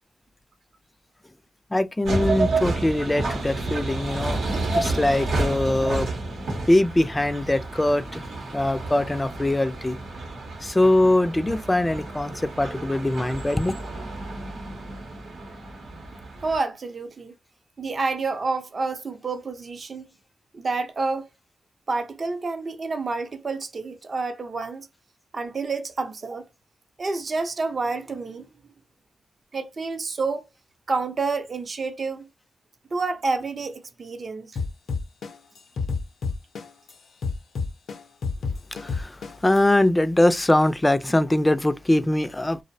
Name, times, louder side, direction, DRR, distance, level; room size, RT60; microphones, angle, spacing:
voice 1, 1.7-4.4 4.7-6.1 6.7-8.2 8.5-10.0 10.6-13.8 38.8-42.6, left 1 dB, 20° left, 0.3 m, -22 dB
sound 1, 2.0-16.6, right 2 dB, 90° right, 0.8 m, -30 dB
voice 2, 16.4-17.3 17.8-20.1 20.5-21.3 21.9-24.9 25.3-26.4 27.0-28.5 29.5-30.5 30.9-32.3 32.9-34.6, right 3 dB, 55° right, 0.5 m, -29 dB
sound 2, 34.6-36.9 37.2-39.6, left 4 dB, 80° left, 0.5 m, -28 dB
2.5 x 2.0 x 2.6 m
cardioid pair, 60°, 0 cm